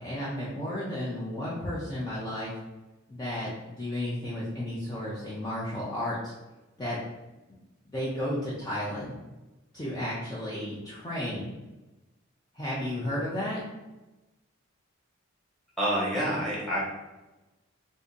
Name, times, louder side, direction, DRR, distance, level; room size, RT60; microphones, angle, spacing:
voice 1, 0.0-2.5 3.1-6.3 6.8-7.0 7.9-9.2 9.7-11.5 12.5-13.6, left 1 dB, 20° left, -8 dB, 0.5 m, -33 dB
voice 2, 15.8-16.8, equal, ahead, -7 dB, 1.1 m, -27 dB
2.7 x 2.5 x 3.7 m, 1.1 s
head